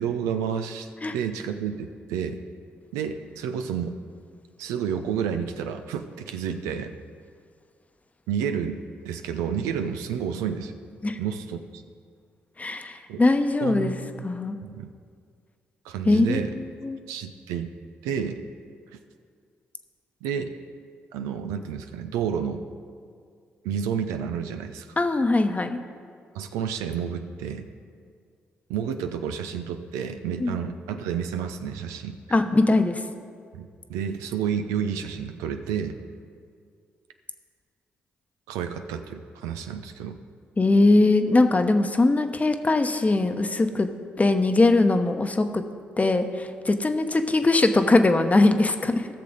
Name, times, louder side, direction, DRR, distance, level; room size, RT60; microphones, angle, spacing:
voice 1, 0.0-2.4 2.9-4.0 4.6-6.9 8.3-10.7 11.2-11.8 13.1-13.2 13.6-14.3 14.6-14.9 15.8-16.5 17.1-17.7 18.0-18.4 20.2-20.5 21.1-22.6 23.6-24.9 26.3-27.7 28.7-32.4 33.5-36.0 38.5-40.2, right 7 dB, 85° right, 7 dB, 0.5 m, -30 dB
voice 2, 12.6-14.0 14.2-14.6 16.0-17.0 25.0-25.8 30.4-30.5 32.3-33.0 40.6-43.9 44.2-45.6 46.0-49.1, left 2 dB, 30° left, 8 dB, 0.9 m, -21 dB
16.0 x 6.7 x 4.0 m, 2.1 s
hypercardioid pair, 45°, 5 cm